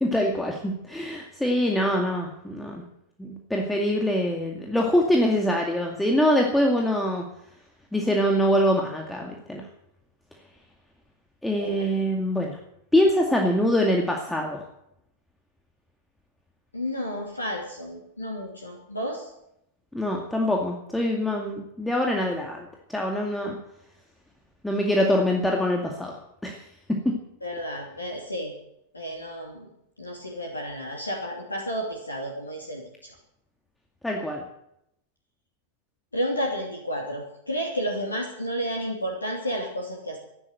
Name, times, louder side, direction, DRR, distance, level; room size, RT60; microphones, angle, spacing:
voice 1, 0.0-2.8 3.2-7.2 7.9-9.6 11.4-12.6 12.9-14.6 19.9-23.6 24.6-26.6 27.0-27.1 34.0-34.4, equal, 5° left, 0 dB, 2.2 m, -24 dB
voice 2, 16.7-19.3 27.4-28.5 28.9-29.7 30.0-32.8 36.1-40.2, equal, 80° left, 0 dB, 2.9 m, -31 dB
15.0 x 11.5 x 7.8 m, 0.79 s
figure-of-eight pair, 90°, 0 cm